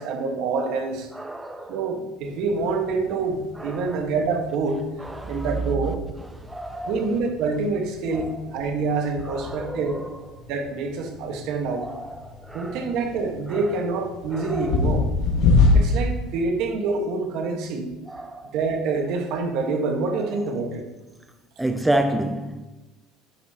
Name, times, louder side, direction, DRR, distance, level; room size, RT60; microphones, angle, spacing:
voice 1, 0.0-1.1 1.7-4.8 5.3-6.0 6.9-10.0 10.5-11.9 12.5-15.1 15.7-17.9 18.5-20.9, right 4 dB, 60° right, 1.5 m, -26 dB
voice 2, 1.1-1.9 3.6-4.0 5.0-5.5 6.4-6.9 8.1-8.3 9.3-10.1 11.8-12.8 13.5-13.6 14.3-14.9 18.1-18.5 21.6-22.6, right 1 dB, 5° right, 0.4 m, -30 dB
sound 1, 2.2-16.4, left 3 dB, 60° left, 1.8 m, -27 dB
9.9 x 8.0 x 2.9 m
cardioid pair, 155°, 0 cm